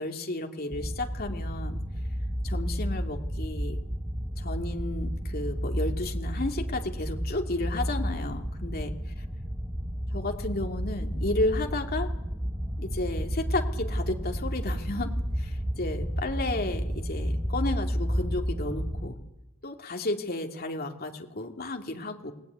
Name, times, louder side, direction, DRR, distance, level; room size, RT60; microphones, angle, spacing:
voice 1, 0.0-1.8 2.4-3.8 4.4-8.9 10.1-12.1 12.8-19.2 19.6-22.3, left 2 dB, 45° left, 3 dB, 2.8 m, -33 dB
sound 1, 0.7-19.1, equal, 10° right, 1.3 m, -31 dB
28.0 x 19.5 x 9.6 m, 0.96 s
head